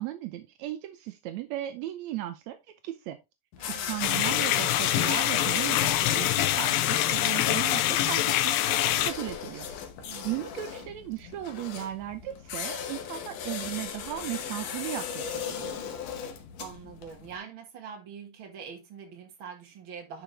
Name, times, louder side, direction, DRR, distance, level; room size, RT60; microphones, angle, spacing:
voice 1, 0.0-2.6 2.8-3.2 3.7-9.7 10.2-15.8, right 14 dB, 80° right, 1.6 m, -36 dB
sound 1, 3.5-17.4, left 7 dB, 70° left, 2.6 m, -39 dB
voice 2, 3.6-4.0 10.1-10.4 16.6-20.2, right 7 dB, 45° right, 2.0 m, -44 dB
sound 2, 4.0-9.1, left 13 dB, 90° left, 2.4 m, -25 dB
10.5 x 5.0 x 3.3 m
omnidirectional pair, 3.9 m